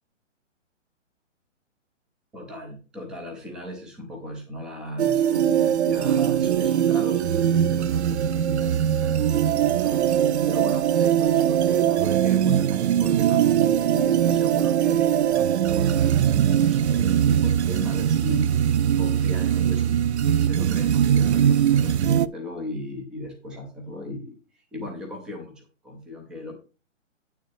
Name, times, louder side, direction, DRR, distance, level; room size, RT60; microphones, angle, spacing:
voice 1, 2.3-10.0 10.5-18.6 19.0-20.0 20.4-24.4 24.7-26.5, left 1 dB, ahead, 3 dB, 0.4 m, -37 dB
sound 1, 5.0-22.3, right 9 dB, 60° right, 0.5 m, -21 dB
9.3 x 8.0 x 3.2 m, 0.33 s
hypercardioid pair, 145°, 38 cm